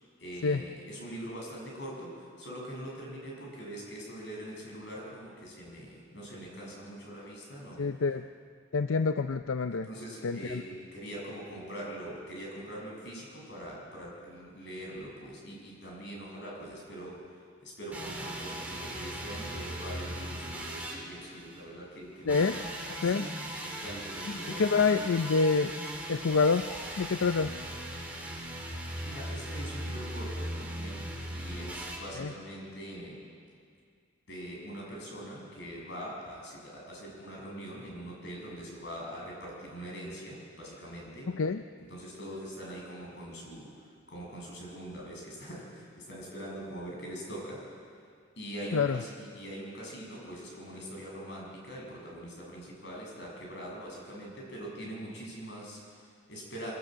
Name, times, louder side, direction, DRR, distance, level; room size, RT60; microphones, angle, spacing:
voice 1, 0.2-8.0 9.7-23.3 23.6-24.8 29.0-33.2 34.3-41.3 41.8-47.6 48.4-56.7, right 1 dB, 60° left, -2 dB, 7.0 m, -43 dB
voice 2, 7.8-8.3 8.7-9.9 10.2-10.6 22.3-22.6 23.0-23.3 24.6-25.7 26.1-26.7 27.0-27.5 32.2-32.3 41.3-41.6 48.7-49.0, left 4 dB, 85° left, 9 dB, 0.5 m, -26 dB
sound 1, 17.9-21.6 22.3-32.0, right 1 dB, 5° right, 2.9 m, -39 dB
23.5 x 18.5 x 7.6 m, 2.2 s
head